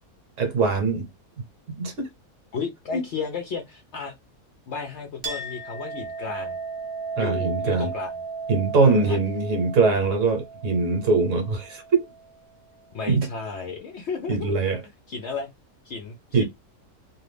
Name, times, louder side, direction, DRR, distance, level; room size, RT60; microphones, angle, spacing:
voice 1, 0.4-1.1 1.8-2.1 2.9-3.0 7.2-7.9 8.5-11.8 13.1-13.3 14.3-14.8 16.3-16.4, right 4 dB, 60° right, 1.1 m, -22 dB
voice 2, 2.5-4.1 4.7-6.6 7.2-8.1 8.8-9.2 12.9-14.6 15.1-15.5 15.8-16.4, left 5 dB, 60° left, 0.7 m, -33 dB
Chink clink, 5.2-12.3, right 4 dB, 30° right, 0.5 m, -35 dB
2.6 x 2.5 x 3.2 m
omnidirectional pair, 1.6 m